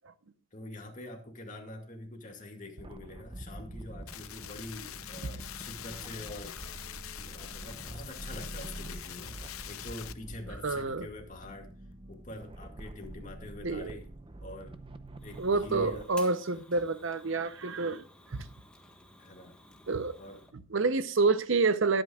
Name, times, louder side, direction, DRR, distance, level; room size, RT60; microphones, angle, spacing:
voice 1, 0.5-6.6 7.2-9.4 9.7-11.7 12.1-14.1 14.4-14.8 15.2-16.3 19.2-19.5 20.2-20.5, left 1 dB, 35° left, 3 dB, 2.2 m, -45 dB
sound 1, 2.8-16.0, right 1 dB, 25° right, 0.6 m, -46 dB
sound 2, 4.1-10.1, left 12 dB, 85° left, 0.7 m, -44 dB
voice 2, 10.6-11.1 13.6-14.0 15.4-18.0 18.3-18.5 19.9-20.1 20.5-22.0, right 3 dB, 65° right, 13 dB, 0.8 m, -28 dB
Fire, 15.2-20.5, left 1 dB, 5° left, 1.4 m, -55 dB
20.5 x 8.9 x 2.4 m, 0.37 s
head